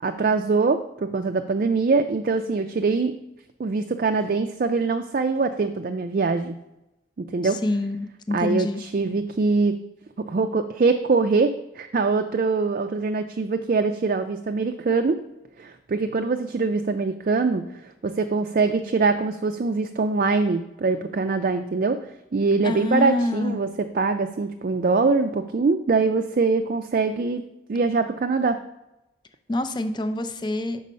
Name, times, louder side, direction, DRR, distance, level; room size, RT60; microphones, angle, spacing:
voice 1, 0.0-3.1 3.6-6.6 7.3-7.6 8.3-9.8 10.2-15.2 15.6-22.0 22.3-23.7 23.9-27.4 27.7-28.6, right 4 dB, 50° right, 7 dB, 0.4 m, -23 dB
voice 2, 7.4-8.8 22.6-23.6 29.5-30.8, left 1 dB, 25° left, 8 dB, 0.5 m, -26 dB
5.5 x 5.3 x 5.1 m, 0.93 s
head